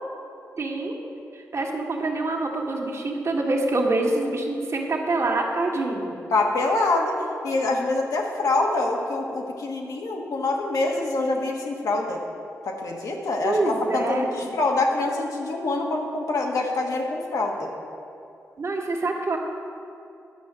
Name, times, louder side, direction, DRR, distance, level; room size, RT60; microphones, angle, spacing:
voice 1, 0.6-1.0 1.5-6.2 13.4-14.6 18.6-19.4, right 2 dB, 55° right, 0 dB, 1.7 m, -26 dB
voice 2, 6.3-7.2 7.4-12.2 12.6-17.7, left 2 dB, 80° left, 0 dB, 1.5 m, -25 dB
10.5 x 5.6 x 7.6 m, 2.7 s
cardioid pair, 55°, 6 cm